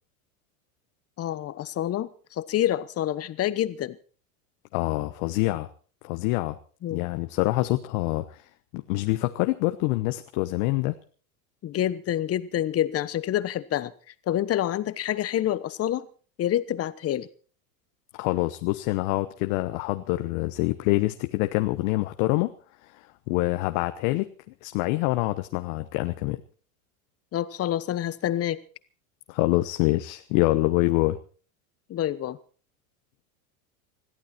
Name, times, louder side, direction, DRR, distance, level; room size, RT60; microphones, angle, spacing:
voice 1, 1.2-4.0 6.8-7.1 11.6-13.9 14.3-16.1 16.4-17.3 27.3-28.6 31.9-32.4, left 12 dB, 35° left, 1.2 m, -27 dB
voice 2, 4.7-5.7 6.0-6.6 6.9-8.4 8.7-10.9 18.2-22.5 22.8-24.3 24.6-26.4 29.3-31.2, left 19 dB, 60° left, 1.1 m, -26 dB
21.5 x 14.5 x 4.4 m
supercardioid pair, 115°, 43 cm